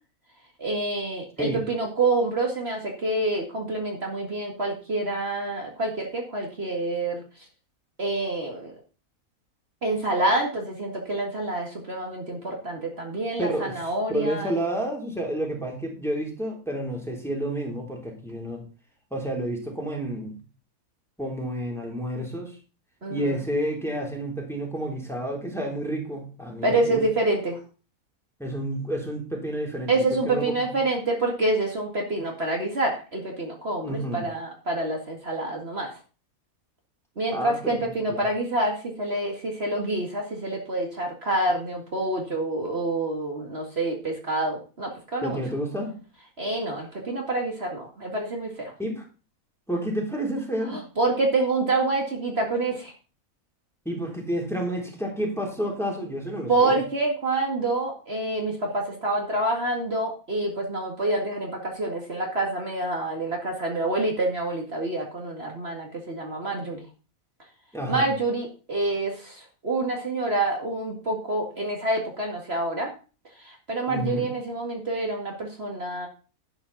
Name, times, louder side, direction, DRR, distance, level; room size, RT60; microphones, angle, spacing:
voice 1, 0.6-7.2 8.0-8.7 9.8-14.6 23.0-23.3 26.6-27.6 29.9-35.9 37.2-45.4 46.4-48.7 50.7-52.9 56.5-66.8 67.9-72.9 73.4-76.1, right 2 dB, 45° right, 0 dB, 2.4 m, -27 dB
voice 2, 13.4-13.8 14.1-18.6 19.1-20.4 21.2-22.6 23.1-27.0 28.4-30.8 33.8-34.2 37.3-38.2 45.2-45.9 48.8-49.0 49.7-50.8 53.9-56.8 67.7-68.1 73.9-74.3, right 1 dB, ahead, -1 dB, 3.5 m, -30 dB
11.5 x 8.7 x 4.1 m, 0.35 s
omnidirectional pair, 1.5 m